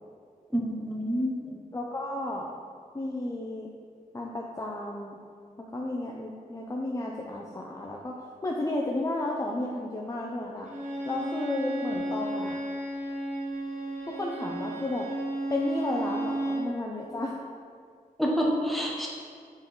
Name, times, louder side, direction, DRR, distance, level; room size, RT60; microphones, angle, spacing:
voice 1, 0.5-1.3 18.2-19.1, equal, ahead, -3 dB, 1.3 m, -27 dB
voice 2, 1.7-2.5 2.9-3.7 4.1-5.2 5.7-10.7 11.1-12.6 14.1-15.1 15.5-17.4, left 1 dB, 20° left, -2 dB, 0.6 m, -33 dB
Bowed string instrument, 10.7-16.7, right 1 dB, 55° right, 1.2 m, -33 dB
7.2 x 3.9 x 3.7 m, 2.1 s
cardioid pair, 60°, 15 cm